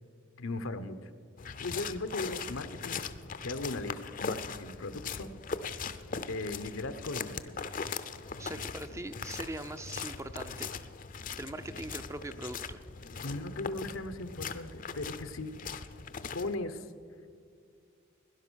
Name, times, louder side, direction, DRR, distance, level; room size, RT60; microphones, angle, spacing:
voice 1, 0.4-1.1 1.6-3.0 3.4-5.3 6.3-7.6 13.2-15.5 16.3-16.9, left 2 dB, 85° left, 11 dB, 0.9 m, -37 dB
sound 1, 1.4-16.5, left 5 dB, 40° left, 0.6 m, -40 dB
voice 2, 8.4-10.7 11.4-12.8, right 1 dB, 15° right, 10 dB, 0.5 m, -41 dB
17.5 x 11.0 x 6.3 m, 2.4 s
head